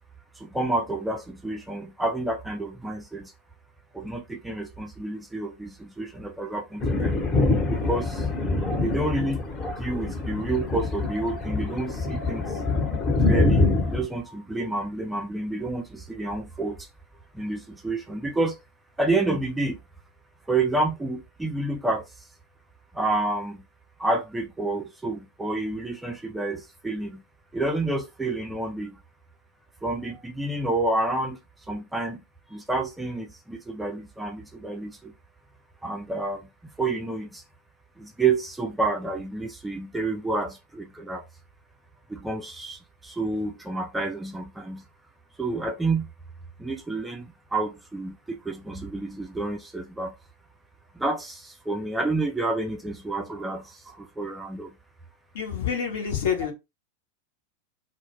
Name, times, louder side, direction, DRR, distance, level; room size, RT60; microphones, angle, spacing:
voice 1, 0.4-3.3 3.9-7.2 7.7-8.2 8.8-9.4 9.8-12.5 13.3-16.9 17.3-18.6 19.0-19.8 20.5-22.0 22.9-23.6 24.0-27.2 27.5-29.0 29.8-31.4 31.7-32.2 32.5-35.1 35.8-36.5 36.8-37.4 38.0-41.2 42.1-44.8 45.4-46.1 46.6-50.1 51.0-54.7, right 2 dB, 5° right, 0.4 m, -29 dB
Thunder, 6.8-14.0, left 2 dB, 30° left, 0.9 m, -25 dB
voice 2, 55.3-56.5, left 7 dB, 60° left, 0.8 m, -27 dB
2.2 x 2.1 x 3.3 m
figure-of-eight pair, 90°, 0 cm